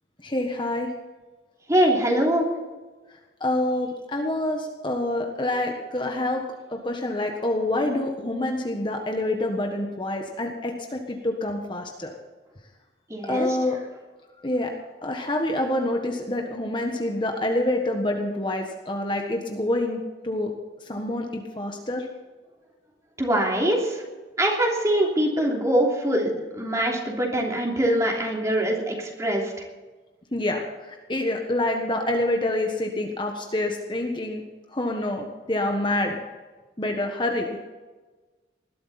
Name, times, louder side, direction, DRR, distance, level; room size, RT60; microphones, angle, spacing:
voice 1, 0.2-0.9 3.4-6.4 6.7-12.1 13.2-13.8 14.4-14.7 15.0-20.5 20.8-22.1 30.3-34.4 34.7-36.2 36.8-37.5, left 1 dB, 25° left, 2 dB, 1.4 m, -27 dB
voice 2, 1.7-2.5 13.1-13.6 23.2-24.0 24.4-29.7, right 1 dB, 15° right, -1 dB, 3.0 m, -23 dB
20.0 x 13.0 x 4.3 m, 1.3 s
head